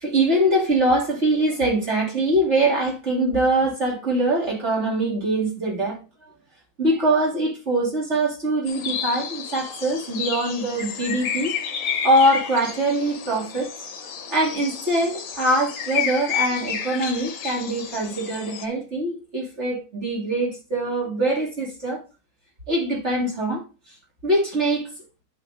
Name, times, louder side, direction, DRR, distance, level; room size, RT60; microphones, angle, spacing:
voice 1, 0.0-6.0 6.8-11.6 12.0-13.7 14.3-22.0 22.7-23.6 24.2-24.9, right 1 dB, 35° right, 3.1 m, -23 dB
sound 1, 8.7-18.7, left 8 dB, 65° left, 1.7 m, -31 dB
11.0 x 5.7 x 2.7 m
omnidirectional pair, 2.2 m